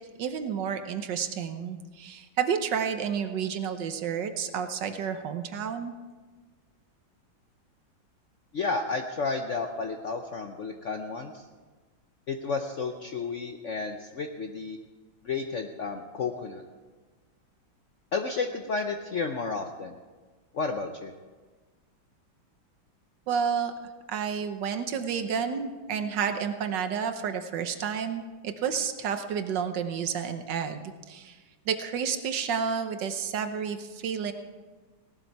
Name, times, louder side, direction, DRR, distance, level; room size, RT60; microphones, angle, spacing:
voice 1, 0.2-5.9 23.3-23.7 24.1-31.4 31.7-34.3, right 7 dB, 70° right, 8 dB, 1.5 m, -30 dB
voice 2, 8.5-11.4 12.3-14.8 15.2-16.6 18.1-20.0 20.5-21.1, left 4 dB, 60° left, 5 dB, 0.8 m, -32 dB
17.5 x 12.0 x 4.7 m, 1.3 s
omnidirectional pair, 2.1 m